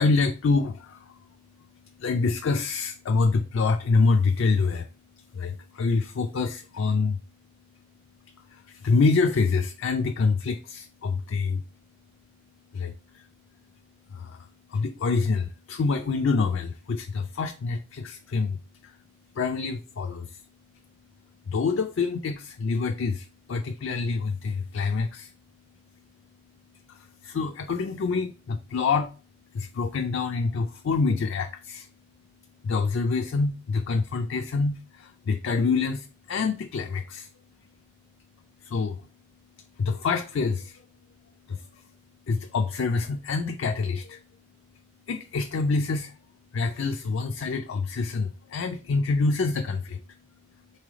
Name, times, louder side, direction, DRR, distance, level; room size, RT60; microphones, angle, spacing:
voice 1, 0.0-4.9 5.2-7.2 8.4-11.6 12.7-13.3 14.1-19.0 19.3-20.4 21.5-25.3 26.9-29.1 29.5-31.9 32.6-37.3 38.6-39.1 39.8-40.8 41.5-41.8 42.3-44.2 45.1-46.2 46.5-50.0, left 4 dB, 70° left, 0.4 m, -26 dB
4.1 x 3.3 x 3.6 m
head